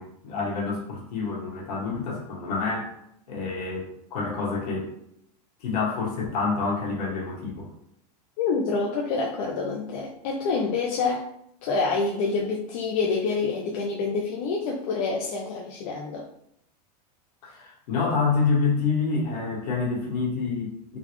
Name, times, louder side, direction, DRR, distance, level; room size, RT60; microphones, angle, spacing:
voice 1, 0.0-2.9 3.3-4.9 5.6-7.7 17.4-21.0, left 4 dB, 70° left, -2 dB, 1.4 m, -27 dB
voice 2, 8.4-11.3 11.6-16.2, left 4 dB, 55° left, -2 dB, 0.6 m, -27 dB
3.8 x 2.3 x 3.0 m, 0.74 s
supercardioid pair, 155°, 21 cm